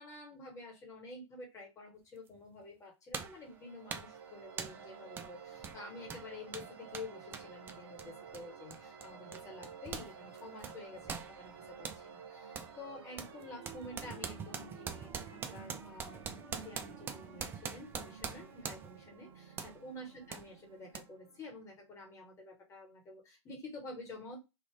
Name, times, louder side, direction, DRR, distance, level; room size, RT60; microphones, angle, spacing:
voice 1, 0.0-24.4, left 2 dB, 20° left, 0 dB, 1.3 m, -49 dB
sound 1, 2.3-2.4 3.1-3.4 3.9-4.2 4.6-4.8 5.2-5.3 5.6-10.1 10.4-12.0 12.5-12.7 13.2-19.0 19.6-19.8 20.3-20.4 20.9-21.0, right 6 dB, 15° right, 0.3 m, -43 dB
sound 2, 3.2-21.8, right 6 dB, 55° right, 0.7 m, -53 dB
3.4 x 2.4 x 3.2 m, 0.24 s
figure-of-eight pair, 105°, 15 cm